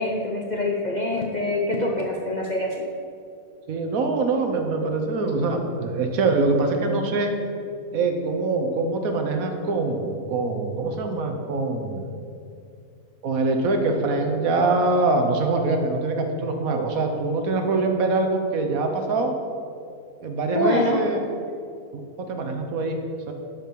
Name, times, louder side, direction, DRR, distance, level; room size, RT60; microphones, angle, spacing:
voice 1, 0.0-2.7 20.5-21.0, left 2 dB, 45° left, -2 dB, 0.6 m, -25 dB
voice 2, 3.7-7.3 7.9-12.3 13.2-19.3 20.2-21.2 21.9-23.0 23.3-23.4, right 3 dB, 65° right, 4 dB, 1.3 m, -24 dB
12.0 x 5.2 x 4.6 m, 2.5 s
omnidirectional pair, 1.6 m